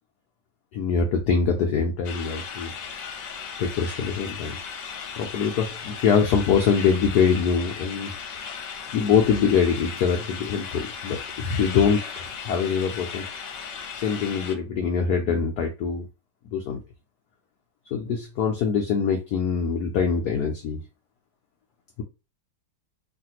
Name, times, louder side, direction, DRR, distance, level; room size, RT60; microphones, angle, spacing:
voice 1, 0.7-2.7 3.6-4.6 5.2-8.1 8.9-13.2 14.0-16.1 16.5-16.8 17.9-20.8, left 6 dB, 85° left, 2 dB, 0.8 m, -23 dB
sound 1, 2.0-14.6, left 6 dB, 70° left, 1.2 m, -36 dB
3.2 x 2.5 x 2.8 m, 0.29 s
omnidirectional pair, 2.3 m